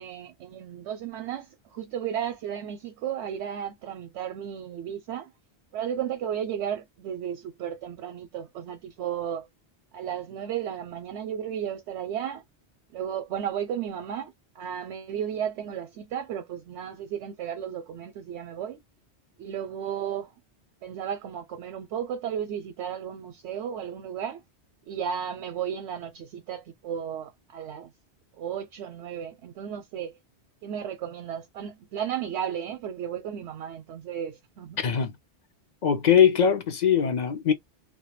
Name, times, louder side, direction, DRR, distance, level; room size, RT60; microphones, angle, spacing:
voice 1, 0.0-5.3 5.7-9.5 9.9-12.4 12.9-18.8 19.4-20.3 20.8-24.4 24.9-27.9 28.4-30.1 30.6-34.8, right 9 dB, 85° right, 0.9 m, -34 dB
voice 2, 34.8-35.1 35.8-37.5, left 8 dB, 55° left, 0.5 m, -21 dB
2.2 x 2.1 x 2.9 m
omnidirectional pair, 1.1 m